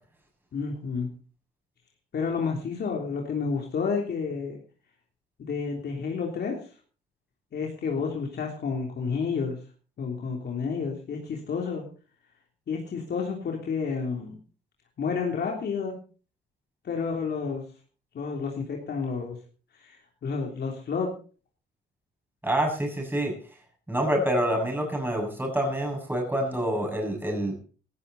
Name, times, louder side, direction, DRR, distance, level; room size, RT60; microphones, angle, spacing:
voice 1, 0.5-1.1 2.1-4.6 5.4-6.6 7.5-9.6 10.0-11.8 12.7-14.4 15.0-16.0 16.8-17.6 18.1-19.4 19.7-21.1, left 5 dB, 55° left, 1 dB, 3.4 m, -30 dB
voice 2, 22.4-23.3 23.9-27.5, right 1 dB, 10° right, 1 dB, 6.9 m, -27 dB
17.5 x 14.0 x 4.2 m, 0.38 s
cardioid pair, 90°, 20 cm